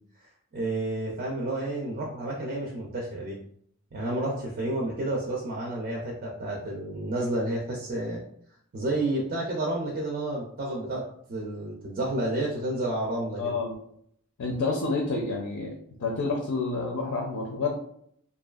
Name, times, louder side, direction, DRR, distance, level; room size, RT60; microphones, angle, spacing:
voice 1, 0.5-3.4 3.9-8.2 8.7-13.6, right 1 dB, 40° right, -2 dB, 0.4 m, -30 dB
voice 2, 13.4-13.7 14.4-15.7 16.0-17.7, left 3 dB, 75° left, 0 dB, 0.5 m, -29 dB
2.6 x 2.2 x 2.3 m, 0.67 s
head